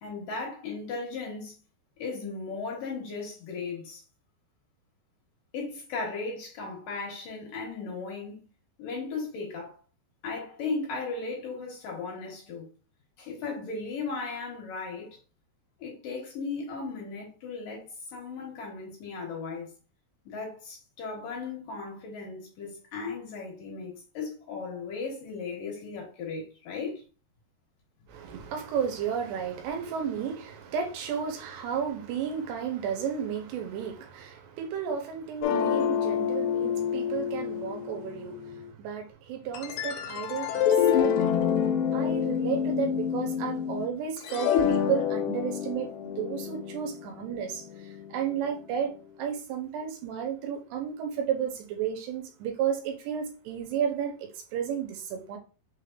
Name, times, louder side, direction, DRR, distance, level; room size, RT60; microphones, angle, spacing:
voice 1, 0.0-1.6 2.0-4.0 5.5-8.5 8.8-9.7 10.2-12.7 13.2-15.2 15.8-19.7 20.3-27.0, left 4 dB, 65° left, 2.7 m, -36 dB
voice 2, 28.1-41.4 41.9-48.9 49.2-55.4, right 7 dB, 85° right, 2.9 m, -33 dB
sound 1, 35.4-38.6 39.5-43.9 44.2-48.4, left 8 dB, 90° left, 2.7 m, -28 dB
6.3 x 3.3 x 2.5 m
omnidirectional pair, 4.8 m